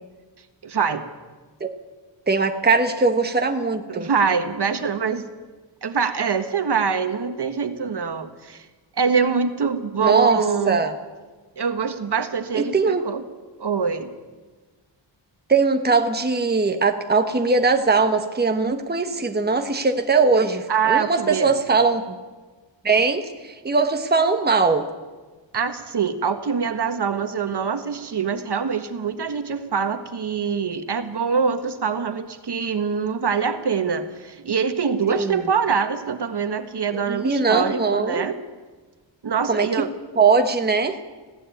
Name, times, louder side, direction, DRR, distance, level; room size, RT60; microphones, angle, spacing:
voice 1, 0.6-1.0 3.9-5.2 5.8-8.7 8.9-10.8 11.6-13.2 13.6-14.1 20.7-21.5 25.5-38.4 39.2-39.9, right 6 dB, 60° right, 8 dB, 1.5 m, -24 dB
voice 2, 2.3-4.1 10.0-10.4 10.7-10.9 12.5-13.0 15.5-22.2 22.8-24.9 35.2-35.4 37.1-38.3 39.5-39.7 40.2-41.0, right 4 dB, 20° right, 6 dB, 1.3 m, -20 dB
19.5 x 16.5 x 9.2 m, 1.3 s
wide cardioid pair, 145°, 45 cm